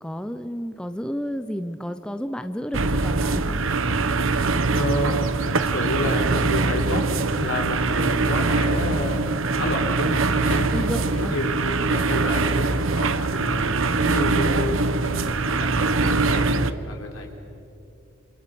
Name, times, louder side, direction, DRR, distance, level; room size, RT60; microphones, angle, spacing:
voice 1, 0.0-3.6 10.7-11.3, equal, 5° left, 9 dB, 0.7 m, -31 dB
sound 1, 2.7-16.7, right 3 dB, 65° right, 1.1 m, -23 dB
voice 2, 4.7-5.3 5.5-7.0 7.4-10.7 11.1-11.5 11.8-13.6 14.0-14.8 15.0-16.5 16.9-17.3, left 1 dB, 70° left, 2 dB, 4.4 m, -29 dB
29.5 x 29.5 x 6.9 m, 2.6 s
head